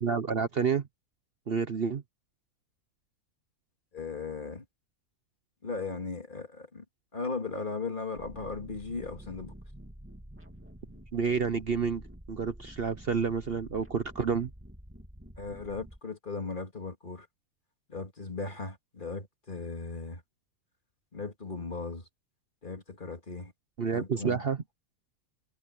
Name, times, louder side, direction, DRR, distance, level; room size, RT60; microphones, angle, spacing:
voice 1, 0.0-0.8 1.5-2.0 11.1-12.0 12.3-14.5 23.8-24.6, right 6 dB, 45° right, 1.0 m, -29 dB
voice 2, 3.9-4.6 5.6-6.8 7.1-9.5 15.4-17.3 17.9-20.2 21.1-22.0 22.6-23.5 23.9-24.4, left 4 dB, 35° left, 2.2 m, -37 dB
sound 1, 8.1-16.0, equal, 10° right, 2.6 m, -49 dB
omnidirectional pair, 1.5 m